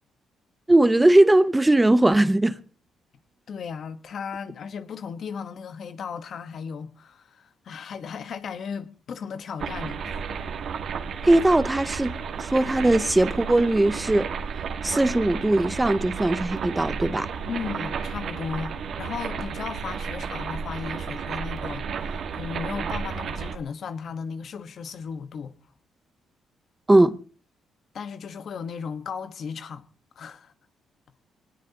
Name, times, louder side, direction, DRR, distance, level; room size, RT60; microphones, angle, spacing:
voice 1, 0.7-2.6 11.2-14.3 14.8-17.3 26.9-27.2, right 1 dB, 15° right, 0.7 m, -19 dB
voice 2, 3.5-10.2 17.5-25.5 27.9-29.9 30.1-30.5, left 6 dB, 60° left, 1.1 m, -36 dB
sound 1, 9.6-23.6, right 6 dB, 60° right, 1.6 m, -32 dB
23.0 x 19.0 x 2.8 m
cardioid pair, 90°, 0 cm